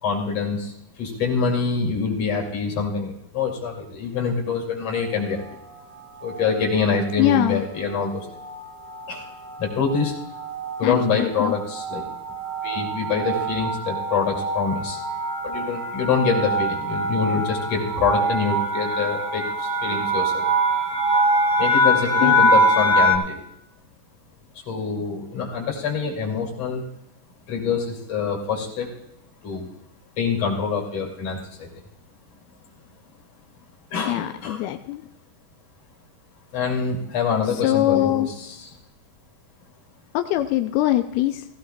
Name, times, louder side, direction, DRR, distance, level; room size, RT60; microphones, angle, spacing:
voice 1, 0.0-5.4 6.2-8.3 9.1-9.3 9.6-10.2 10.8-12.0 12.6-15.0 15.4-20.5 21.6-23.4 24.7-26.8 27.5-28.9 29.4-29.7 30.2-31.7 33.9-34.6 36.5-38.5, left 5 dB, 45° left, -2 dB, 3.3 m, -25 dB
sound 1, 5.0-5.5 6.2-6.6 6.9-7.1 7.4-23.1, right 1 dB, 50° right, 0.5 m, -24 dB
voice 2, 7.2-7.6 10.8-11.5 22.2-22.5 34.1-35.1 37.5-38.3 40.1-41.5, left 15 dB, 85° left, 7 dB, 2.4 m, -22 dB
17.5 x 15.0 x 2.3 m, 0.78 s
omnidirectional pair, 4.2 m